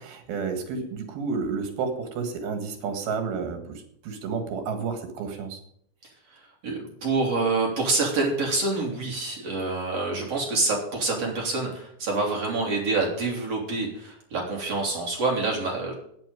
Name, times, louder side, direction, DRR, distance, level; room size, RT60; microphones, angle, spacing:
voice 1, 0.0-5.6, right 5 dB, 80° right, 6 dB, 3.6 m, -31 dB
voice 2, 6.3-15.9, right 3 dB, 45° right, -1 dB, 3.9 m, -27 dB
9.2 x 8.9 x 9.1 m, 0.69 s
omnidirectional pair, 4.3 m